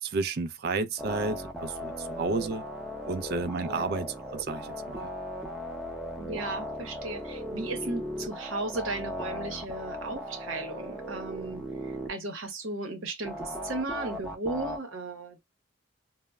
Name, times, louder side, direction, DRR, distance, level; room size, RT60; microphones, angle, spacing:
voice 1, 0.0-2.6 3.1-5.1, right 3 dB, 50° right, 0.3 m, -32 dB
sound 1, 1.0-12.1 13.2-14.8, equal, ahead, 0.6 m, -37 dB
voice 2, 6.1-15.4, right 2 dB, 80° right, 0.8 m, -36 dB
2.0 x 2.0 x 3.3 m
head